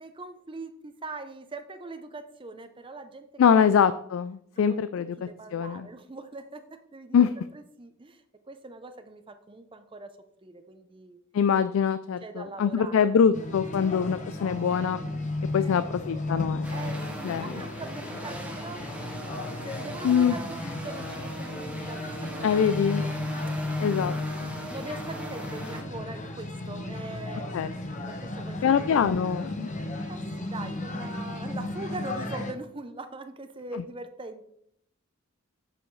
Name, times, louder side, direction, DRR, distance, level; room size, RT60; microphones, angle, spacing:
voice 1, 0.0-3.6 4.5-7.3 7.5-11.2 12.2-13.1 15.5-15.9 16.7-22.5 22.9-23.1 23.8-24.3 24.7-27.5 28.1-28.9 29.8-34.4, right 2 dB, 25° right, 9 dB, 0.6 m, -42 dB
voice 2, 3.4-5.2 5.5-5.9 7.1-7.3 11.3-15.0 15.5-16.7 17.2-17.5 20.0-20.3 22.4-23.0 23.8-24.5 27.5-27.7 28.6-29.7 33.7-33.8, left 7 dB, 65° left, 13 dB, 0.3 m, -24 dB
sound 1, 13.3-32.5, left 2 dB, 35° left, 0.9 m, -34 dB
sound 2, 16.6-25.8, right 1 dB, 5° right, 1.2 m, -40 dB
8.0 x 7.1 x 3.2 m, 0.70 s
head